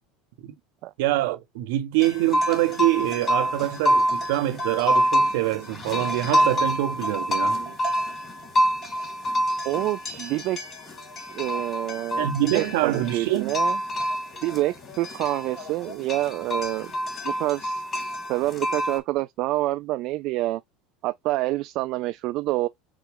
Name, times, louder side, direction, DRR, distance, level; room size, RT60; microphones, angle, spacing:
voice 1, 1.0-7.6 12.2-13.6, right 15 dB, 75° right, 1.0 m, -25 dB
sound 1, 2.0-19.0, equal, 30° left, 2.7 m, -27 dB
voice 2, 7.4-7.7 9.6-10.6 11.3-13.8 14.4-16.9 17.2-17.8 18.3-20.6 21.0-22.7, right 17 dB, 60° right, 0.3 m, -27 dB
6.2 x 2.4 x 3.3 m
hypercardioid pair, 90°, 0 cm